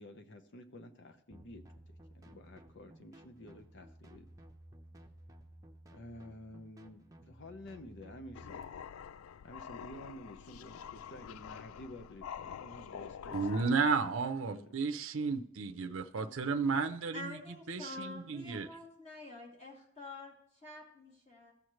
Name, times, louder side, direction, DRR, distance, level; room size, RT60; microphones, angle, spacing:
voice 1, 0.0-4.3 5.9-8.7 9.4-13.9 14.5-14.7, left 1 dB, 60° left, 7 dB, 0.9 m, -51 dB
sound 1, 1.3-8.6, right 1 dB, 15° right, 0.7 m, -56 dB
sound 2, 8.3-14.4, left 8 dB, 85° left, 0.3 m, -47 dB
voice 2, 13.3-17.4 17.7-18.7, right 5 dB, 65° right, 7 dB, 0.6 m, -33 dB
voice 3, 16.2-16.6 17.1-21.5, left 2 dB, 35° left, -2 dB, 2.6 m, -48 dB
15.0 x 6.4 x 3.1 m, 0.70 s
head